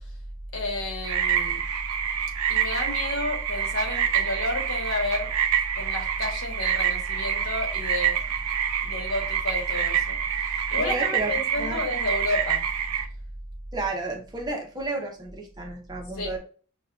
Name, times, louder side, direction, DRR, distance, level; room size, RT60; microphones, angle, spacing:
voice 1, 0.5-1.6 2.5-5.3 5.8-8.2 8.8-10.2 10.7-12.6 16.1-16.4, left 1 dB, 70° left, 1 dB, 1.2 m, -30 dB
sound 1, 1.0-13.1, right 8 dB, 75° right, 0.5 m, -27 dB
voice 2, 10.8-11.3 11.6-11.8 13.7-16.4, right 2 dB, 20° right, 2 dB, 0.6 m, -32 dB
6.3 x 2.2 x 2.3 m, 0.39 s
head